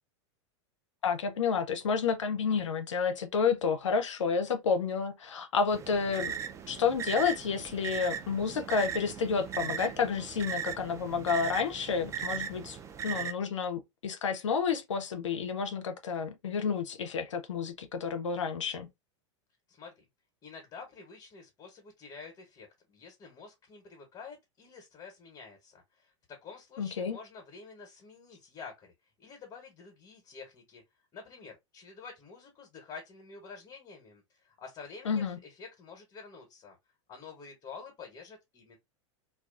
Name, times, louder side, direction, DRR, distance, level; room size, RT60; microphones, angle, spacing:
voice 1, 1.0-6.3 6.7-12.8 13.0-18.9 26.8-27.2 35.1-35.4, left 5 dB, 80° left, 0.5 m, -30 dB
sound 1, 5.7-13.3, right 8 dB, 20° right, 0.3 m, -38 dB
voice 2, 20.4-30.8 31.1-36.8 37.1-38.8, left 5 dB, 30° left, 1.0 m, -49 dB
2.3 x 2.3 x 2.4 m
hypercardioid pair, 95°, 15 cm